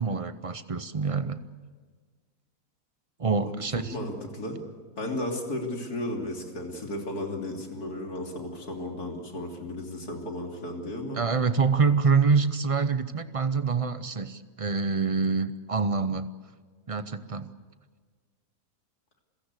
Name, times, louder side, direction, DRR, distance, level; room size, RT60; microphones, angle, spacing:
voice 1, 0.0-1.4 3.2-4.0 11.1-16.3 16.9-17.5, right 5 dB, 50° right, 12 dB, 0.4 m, -26 dB
voice 2, 3.9-4.6 5.0-11.2, left 1 dB, 70° left, 2 dB, 3.6 m, -34 dB
28.5 x 16.5 x 8.2 m, 1.5 s
omnidirectional pair, 1.7 m